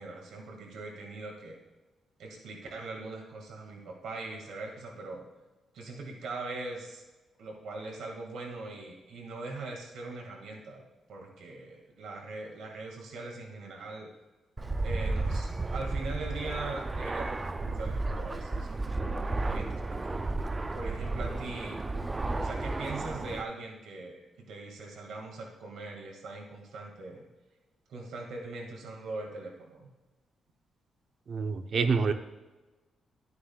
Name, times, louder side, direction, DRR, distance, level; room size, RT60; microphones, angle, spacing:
voice 1, 0.0-1.6 2.2-5.2 5.7-7.0 7.4-14.1 14.8-20.2 20.7-21.8 22.3-24.2 24.5-27.2 27.9-29.9, right 3 dB, 85° right, 0 dB, 1.9 m, -41 dB
Fixed-wing aircraft airplane, 14.6-23.4, right 2 dB, 20° right, 0.3 m, -33 dB
voice 2, 31.3-32.1, right 5 dB, 55° right, 8 dB, 0.7 m, -27 dB
11.0 x 9.4 x 2.3 m, 1.1 s
cardioid pair, 115°, 0 cm